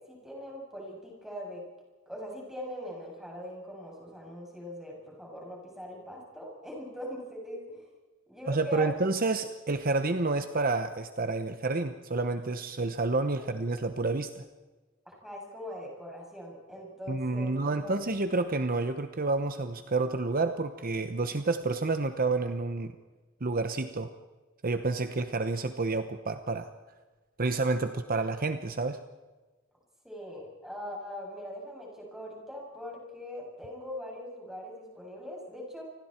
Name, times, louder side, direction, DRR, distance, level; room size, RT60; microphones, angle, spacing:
voice 1, 0.0-1.6 2.1-7.9 8.3-8.9 13.4-13.5 15.1-18.0 30.0-35.8, left 1 dB, ahead, -2 dB, 7.7 m, -41 dB
voice 2, 8.5-14.4 17.1-22.9 23.4-24.1 24.6-26.7 27.4-29.0, right 3 dB, 45° right, 8 dB, 1.0 m, -29 dB
29.0 x 21.0 x 4.5 m, 1.3 s
head